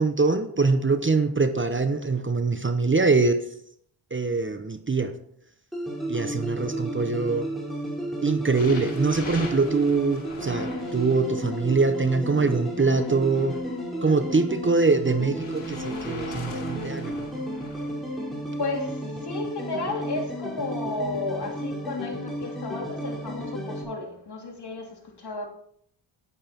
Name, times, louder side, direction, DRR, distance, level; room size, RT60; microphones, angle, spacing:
voice 1, 0.0-3.4 4.1-5.2 6.1-7.5 8.2-13.6 14.0-17.2, right 4 dB, 25° right, 0.9 m, -23 dB
sound 1, 5.7-23.8, equal, ahead, 4.7 m, -33 dB
sound 2, 8.5-11.6 12.5-14.3 15.4-17.9 18.7-19.0 19.8-19.9, left 3 dB, 75° left, 4.8 m, -42 dB
voice 2, 18.0-25.5, left 2 dB, 55° left, 3.3 m, -33 dB
10.0 x 9.1 x 4.4 m
cardioid pair, 70°, 47 cm